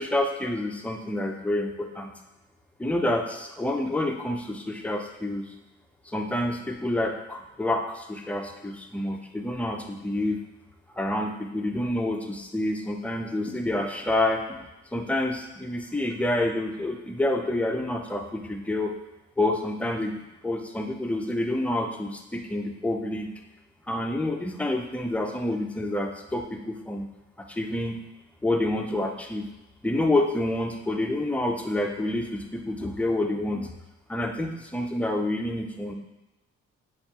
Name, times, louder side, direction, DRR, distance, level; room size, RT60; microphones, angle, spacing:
voice 1, 0.0-2.1 2.8-5.5 6.1-10.4 11.0-14.6 14.9-18.9 19.4-23.3 23.9-27.1 27.4-28.0 28.4-29.5 29.8-33.7 34.1-35.9, left 1 dB, 5° left, 3 dB, 0.5 m, -28 dB
6.5 x 2.4 x 2.9 m, 1.0 s
cardioid pair, 90°, 30 cm